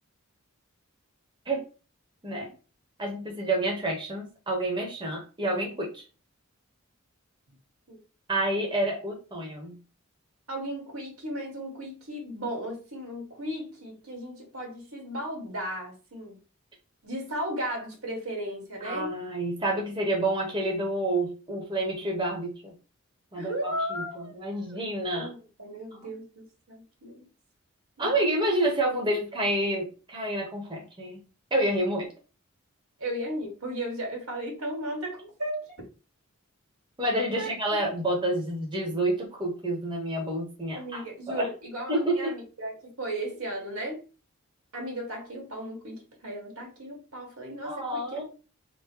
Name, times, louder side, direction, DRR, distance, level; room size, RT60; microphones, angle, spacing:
voice 1, 3.0-6.0 8.3-9.8 18.8-22.7 23.3-25.3 28.0-31.2 31.5-32.1 37.0-41.5 41.9-42.4 47.6-48.2, right 1 dB, 20° right, -1 dB, 0.9 m, -29 dB
voice 2, 10.5-16.4 17.0-19.1 23.3-24.8 25.1-27.3 28.0-28.1 33.0-35.7 37.3-37.5 40.8-44.0 44.7-48.2, right 1 dB, 90° right, 1 dB, 1.5 m, -35 dB
3.6 x 2.1 x 4.3 m, 0.34 s
head